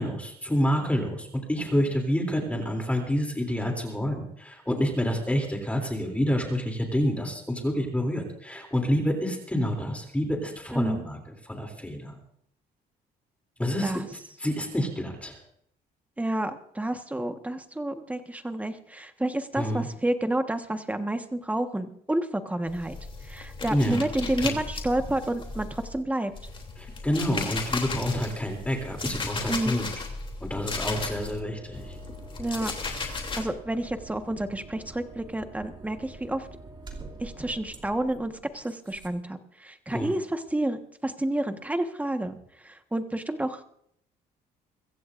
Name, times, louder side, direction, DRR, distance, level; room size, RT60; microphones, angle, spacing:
voice 1, 0.0-11.2 11.4-12.2 13.6-15.4 19.6-19.9 23.7-24.1 24.4-24.5 26.8-29.9 30.4-32.0 39.9-40.2, equal, 10° left, 2 dB, 3.1 m, -28 dB
voice 2, 10.7-11.0 13.8-14.0 16.2-23.0 23.2-26.3 29.5-29.8 32.4-32.7 33.4-36.5 37.2-43.6, right 1 dB, 10° right, 7 dB, 1.4 m, -30 dB
sound 1, 22.7-26.0 26.3-31.4 31.7-33.4, left 4 dB, 30° left, 3.2 m, -35 dB
sound 2, 30.7-39.1, right 3 dB, 25° right, 2.8 m, -46 dB
23.5 x 15.5 x 2.6 m, 0.70 s
cardioid pair, 110°, 17 cm